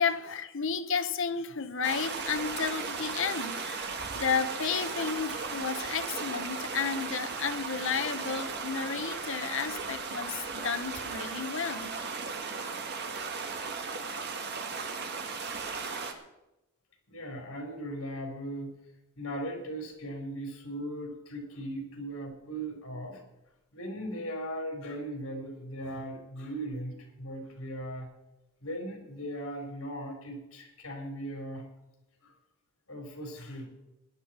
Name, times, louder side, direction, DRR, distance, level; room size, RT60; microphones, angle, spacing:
voice 1, 0.0-11.9, left 6 dB, 65° left, 10 dB, 1.0 m, -32 dB
sound 1, 1.8-16.1, right 4 dB, 55° right, 1.6 m, -36 dB
voice 2, 17.1-18.7 19.2-23.2 23.7-28.1 28.6-31.7 32.2-32.3 32.9-33.7, right 1 dB, 85° left, 2 dB, 4.2 m, -38 dB
17.5 x 11.0 x 4.4 m, 0.93 s
head